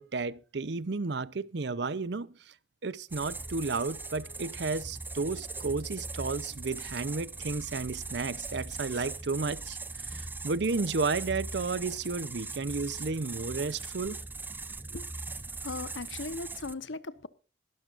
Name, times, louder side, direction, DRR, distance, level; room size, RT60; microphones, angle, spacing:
voice 1, 0.0-2.3 2.8-9.8 10.0-14.2, right 4 dB, 60° right, 0.6 m, -32 dB
sound 1, 3.1-16.7, right 3 dB, 10° right, 0.6 m, -40 dB
voice 2, 15.6-17.3, left 3 dB, 80° left, 1.0 m, -38 dB
22.5 x 12.5 x 2.5 m
head